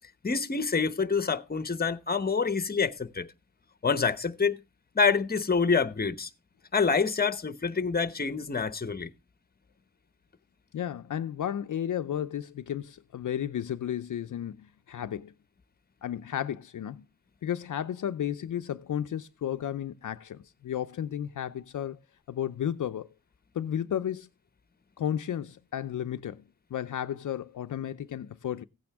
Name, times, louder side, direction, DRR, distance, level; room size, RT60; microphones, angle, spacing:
voice 1, 0.2-3.3 3.8-4.6 4.9-6.3 6.7-9.1, left 5 dB, 25° left, 1.0 m, -27 dB
voice 2, 10.7-15.3 16.0-17.1 17.4-22.0 22.3-23.1 23.5-24.3 25.0-26.4 26.7-28.6, left 10 dB, 60° left, 0.6 m, -33 dB
16.0 x 8.8 x 3.5 m
cardioid pair, 70°, 35 cm